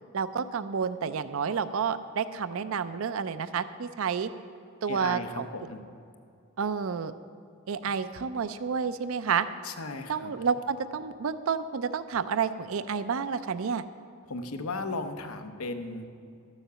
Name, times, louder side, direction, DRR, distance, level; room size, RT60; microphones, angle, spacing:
voice 1, 0.1-4.3 4.8-5.5 6.6-7.1 7.7-9.5 10.1-13.8, right 6 dB, 70° right, 13 dB, 0.4 m, -30 dB
voice 2, 4.9-5.8 9.6-10.3 14.3-16.1, left 3 dB, 85° left, 7 dB, 0.9 m, -36 dB
12.5 x 7.2 x 6.8 m, 2.4 s
head